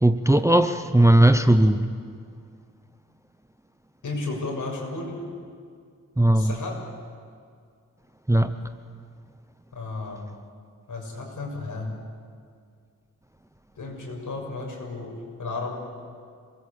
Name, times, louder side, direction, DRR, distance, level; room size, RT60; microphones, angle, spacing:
voice 1, 0.0-1.9 6.2-6.5 8.3-8.6, right 1 dB, 10° right, 9 dB, 0.7 m, -18 dB
voice 2, 4.0-5.2 6.3-6.7 9.7-10.3 10.9-12.0 13.7-15.1 15.4-15.7, left 3 dB, 65° left, 0 dB, 6.6 m, -33 dB
27.5 x 21.0 x 8.5 m, 2.2 s
wide cardioid pair, 160°, 33 cm